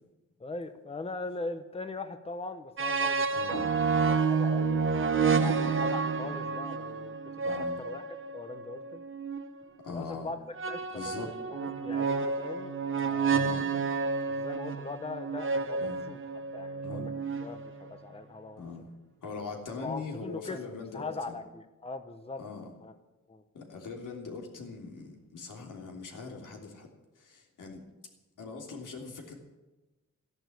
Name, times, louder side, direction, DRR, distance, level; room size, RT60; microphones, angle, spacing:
voice 1, 0.4-3.8 4.0-4.9 5.1-8.0 8.3-9.0 9.9-10.4 10.7-13.6 14.3-16.2 16.5-18.6 19.8-20.6 20.9-22.4 22.8-22.9 23.3-23.4, left 3 dB, 20° left, 8 dB, 0.9 m, -41 dB
sound 1, 2.8-9.5 10.6-17.9, right 5 dB, 40° right, 1.0 m, -30 dB
voice 2, 3.3-3.7 5.3-5.5 7.4-7.8 9.8-10.3 10.9-11.3 13.3-13.7 15.8-16.0 16.8-17.1 18.6-18.9 19.2-21.4 22.4-22.7 23.5-26.9 27.1-27.8 28.4-29.4, left 4 dB, 85° left, 0 dB, 3.2 m, -41 dB
14.5 x 11.0 x 8.1 m, 1.1 s
wide cardioid pair, 130°, 31 cm